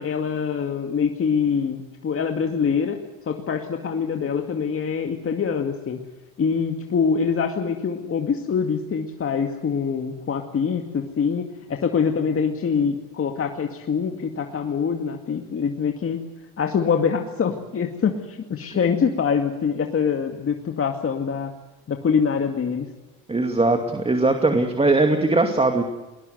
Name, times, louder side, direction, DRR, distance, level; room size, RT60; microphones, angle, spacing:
voice 1, 0.0-6.0 6.4-16.2 16.6-21.5 21.9-22.9, left 6 dB, 40° left, 4 dB, 2.2 m, -24 dB
voice 2, 23.3-25.8, right 2 dB, 15° right, 4 dB, 2.4 m, -20 dB
21.0 x 21.0 x 8.0 m, 1.1 s
cardioid pair, 95°, 34 cm